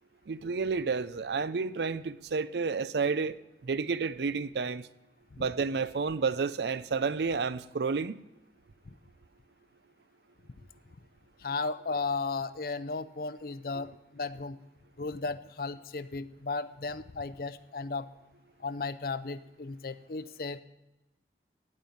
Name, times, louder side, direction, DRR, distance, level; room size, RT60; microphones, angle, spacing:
voice 1, 0.3-3.4 3.6-4.9 5.4-8.2, right 5 dB, 70° right, 0.5 m, -30 dB
voice 2, 11.4-14.6 15.0-18.1 18.6-20.6, left 4 dB, 55° left, 0.5 m, -35 dB
15.5 x 5.5 x 9.2 m
head